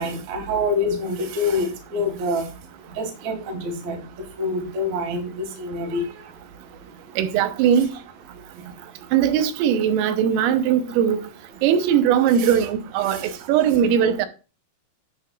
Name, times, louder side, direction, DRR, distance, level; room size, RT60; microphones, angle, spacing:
voice 1, 0.0-2.4 3.0-4.0 4.4-6.1 12.4-12.5, left 2 dB, 50° right, 2.4 m, -26 dB
voice 2, 7.2-7.9 9.1-11.2 11.6-14.3, right 8 dB, 90° right, 3.5 m, -20 dB
11.0 x 7.9 x 2.4 m
omnidirectional pair, 5.9 m